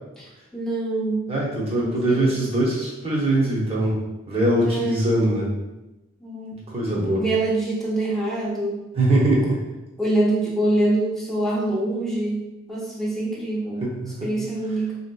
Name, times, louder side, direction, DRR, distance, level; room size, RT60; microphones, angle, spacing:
voice 1, 0.5-1.2 1.7-2.3 4.6-5.0 6.2-6.6 7.1-8.8 10.0-12.4 12.7-13.8 14.2-14.9, right 1 dB, ahead, -6 dB, 0.8 m, -25 dB
voice 2, 1.3-4.0 4.3-5.5 6.7-7.2 8.9-9.6 13.8-14.1, right 1 dB, 30° right, -5 dB, 0.9 m, -22 dB
3.6 x 2.7 x 2.2 m, 0.98 s
head